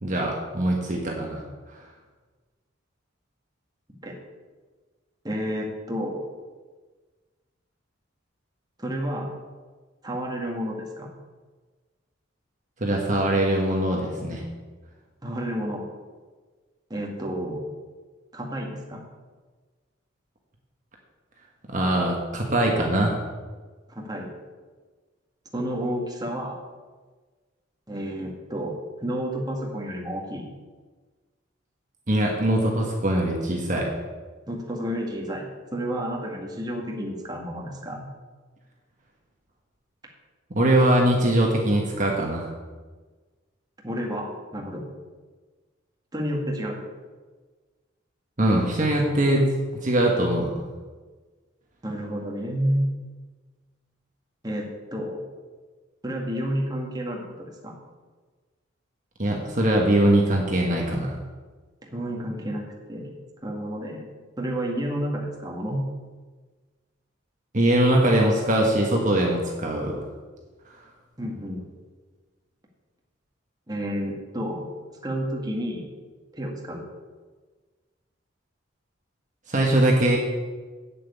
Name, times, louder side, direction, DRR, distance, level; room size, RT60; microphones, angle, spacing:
voice 1, 0.0-1.4 1.7-1.8 12.8-14.4 21.7-23.2 32.1-33.9 40.5-42.5 48.4-49.5 49.7-50.5 59.2-61.2 67.5-69.9 79.5-80.2, right 1 dB, 40° right, -1 dB, 1.4 m, -22 dB
voice 2, 5.2-6.3 8.8-9.3 10.0-11.1 15.2-15.8 16.9-17.6 18.3-19.0 23.9-24.3 25.5-26.6 27.9-28.7 29.0-30.5 34.5-38.1 43.8-44.8 46.1-46.8 51.8-52.9 54.4-55.2 56.0-57.8 61.8-63.1 63.4-64.0 64.4-65.8 71.2-71.7 73.7-74.7 75.0-75.8 76.3-76.8, equal, 20° right, -1 dB, 1.7 m, -30 dB
7.7 x 7.5 x 8.6 m, 1.4 s
head